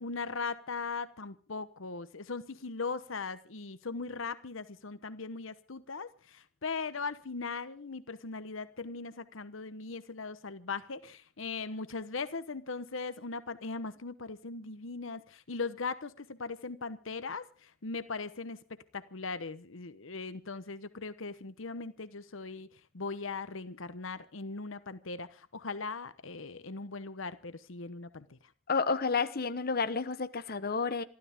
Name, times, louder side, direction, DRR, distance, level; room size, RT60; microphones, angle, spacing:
voice 1, 0.0-18.6 18.9-22.7 22.9-28.4, left 4 dB, 70° left, 1.0 m, -39 dB
voice 2, 28.7-31.0, left 4 dB, 50° left, 1.1 m, -30 dB
27.5 x 13.0 x 3.6 m
head